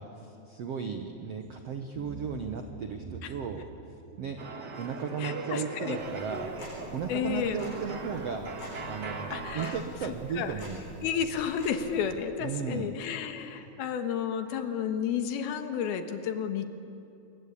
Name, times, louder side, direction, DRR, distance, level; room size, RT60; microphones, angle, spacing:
voice 1, 0.0-3.6 4.2-4.5 4.8-8.6 8.9-11.1 12.4-12.9, right 6 dB, 70° right, 5 dB, 1.4 m, -35 dB
sound 1, 1.4-14.0, right 4 dB, 85° right, 4.1 m, -50 dB
sound 2, 4.4-9.8, right 4 dB, 45° right, 1.3 m, -40 dB
voice 2, 5.2-6.0 7.1-7.6 9.3-9.8 10.3-10.6 11.0-16.7, left 7 dB, 75° left, 7 dB, 3.1 m, -32 dB
Tick-tock, 6.0-12.1, left 2 dB, 45° left, 9.3 m, -47 dB
26.5 x 23.0 x 8.6 m, 2.8 s
omnidirectional pair, 4.6 m